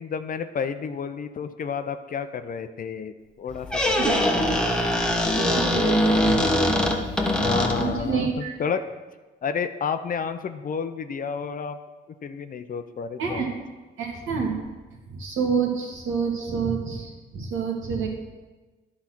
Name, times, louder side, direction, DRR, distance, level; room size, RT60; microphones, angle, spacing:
voice 1, 0.0-4.5 7.4-8.8 9.4-11.8 12.2-13.6, left 6 dB, 45° left, 10 dB, 0.6 m, -31 dB
Squeak, 3.5-8.1, left 1 dB, 5° left, 1.1 m, -22 dB
voice 2, 5.4-6.4 7.8-8.5 13.2-13.5 14.0-14.5 15.1-18.1, right 5 dB, 85° right, -1 dB, 1.9 m, -27 dB
10.5 x 4.3 x 6.0 m, 1.2 s
cardioid pair, 90°, 20 cm